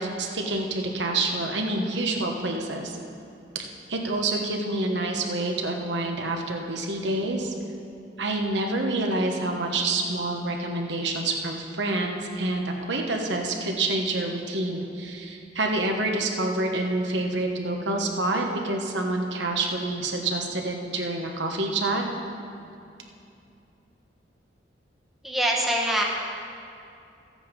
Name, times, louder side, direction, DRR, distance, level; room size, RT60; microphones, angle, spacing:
voice 1, 0.0-3.0 3.9-7.5 8.2-22.0, right 2 dB, 70° right, 2 dB, 1.2 m, -27 dB
voice 2, 25.2-26.0, right 1 dB, ahead, -2 dB, 1.0 m, -24 dB
13.5 x 8.8 x 5.2 m, 2.6 s
head